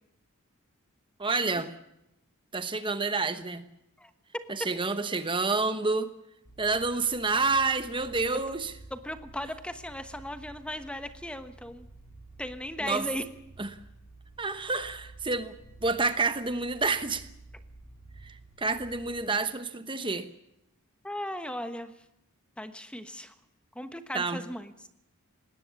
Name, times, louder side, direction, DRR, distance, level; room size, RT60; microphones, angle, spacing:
voice 1, 1.2-1.7 2.5-3.6 4.5-6.1 6.6-8.7 12.8-13.1 13.6-13.7 14.4-15.5 15.8-17.3 18.2-20.3 24.1-24.4, right 3 dB, 20° right, 11 dB, 1.1 m, -29 dB
voice 2, 4.0-4.7 8.9-11.9 12.4-13.2 19.2-19.3 21.0-21.9 22.6-23.3 23.8-24.7, left 1 dB, 5° left, 10 dB, 1.1 m, -37 dB
sound 1, 6.4-19.2, right 2 dB, 75° left, 5.7 m, -52 dB
19.5 x 17.5 x 8.4 m, 0.83 s
head